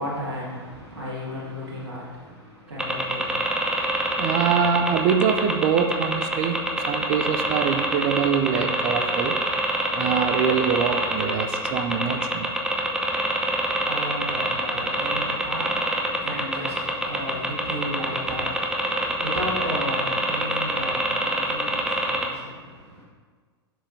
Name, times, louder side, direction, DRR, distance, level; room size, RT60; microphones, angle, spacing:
voice 1, 0.0-4.7 13.4-23.1, equal, 75° right, -6 dB, 1.9 m, -35 dB
sound 1, 2.8-22.3, right 1 dB, 5° right, 0.8 m, -25 dB
voice 2, 4.2-6.6 6.9-9.4 9.9-12.5, right 7 dB, 40° right, 8 dB, 0.6 m, -24 dB
7.6 x 6.6 x 2.7 m, 1.5 s
figure-of-eight pair, 90°, 14 cm